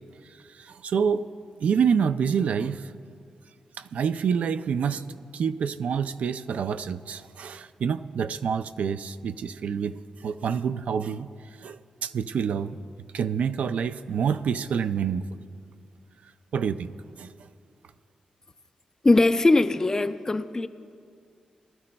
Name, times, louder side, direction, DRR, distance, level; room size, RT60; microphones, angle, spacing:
voice 1, 0.6-1.2 1.6-2.9 3.8-5.0 5.3-11.3 11.6-12.8 13.1-15.4 16.5-17.3, right 7 dB, 75° right, 11 dB, 0.3 m, -27 dB
voice 2, 19.0-20.7, left 2 dB, 25° left, 11 dB, 0.4 m, -20 dB
20.0 x 12.0 x 2.2 m, 2.3 s
cardioid pair, 85°, 2 cm